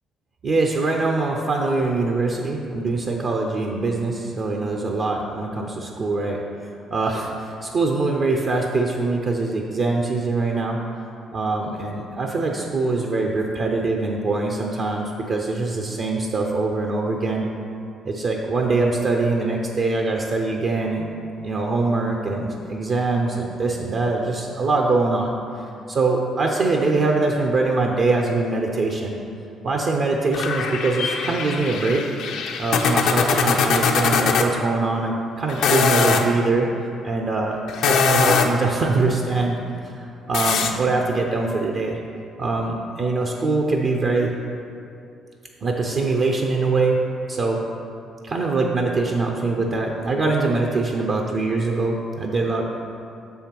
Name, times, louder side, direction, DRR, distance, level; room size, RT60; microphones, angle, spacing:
voice 1, 0.4-6.4 6.9-10.8 11.3-17.5 18.0-29.2 29.6-32.1 32.6-36.7 37.0-39.6 39.8-42.0 42.4-44.3 45.6-47.7 48.2-52.6, right 3 dB, 55° right, 1 dB, 0.6 m, -23 dB
sound 1, 30.3-34.5 35.5-36.3 37.7-38.7 40.3-40.7, left 5 dB, 75° left, 0.5 m, -21 dB
6.6 x 5.6 x 4.5 m, 2.6 s
supercardioid pair, 65°, 0 cm